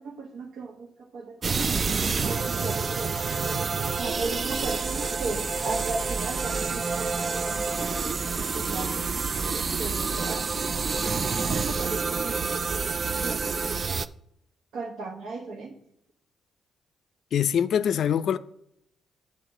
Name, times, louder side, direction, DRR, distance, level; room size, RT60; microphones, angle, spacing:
voice 1, 0.0-1.6 2.3-3.4 4.0-7.7 8.2-9.0 9.7-10.5 11.2-12.6 13.2-13.6 14.7-15.7, right 3 dB, 80° right, 0.9 m, -36 dB
sound 1, 1.4-14.1, right 4 dB, 40° right, 0.3 m, -28 dB
voice 2, 17.3-18.4, left 9 dB, 65° left, 0.4 m, -23 dB
8.5 x 3.2 x 6.4 m
cardioid pair, 90°, 0 cm